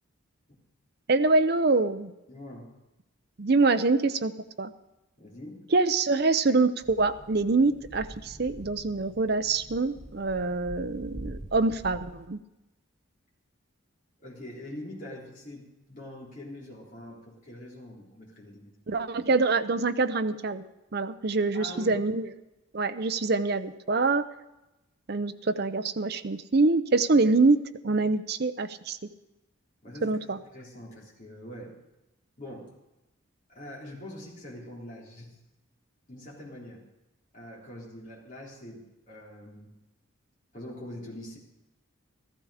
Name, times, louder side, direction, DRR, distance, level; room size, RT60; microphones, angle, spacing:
voice 1, 1.1-2.1 3.4-4.3 4.6-4.7 5.7-12.4 18.9-20.6 20.9-22.3 22.7-24.2 25.1-29.0 30.0-30.4, right 3 dB, 50° right, 10 dB, 0.6 m, -25 dB
voice 2, 2.3-2.7 5.2-5.6 14.2-18.7 21.5-22.0 29.8-30.2 30.5-31.8 32.4-32.7 33.5-35.4 36.1-36.9 37.3-39.7 40.5-41.4, left 1 dB, 40° left, -5 dB, 3.6 m, -43 dB
sound 1, 6.8-12.3, right 1 dB, 35° right, 1.0 m, -45 dB
14.5 x 14.0 x 4.9 m, 0.96 s
head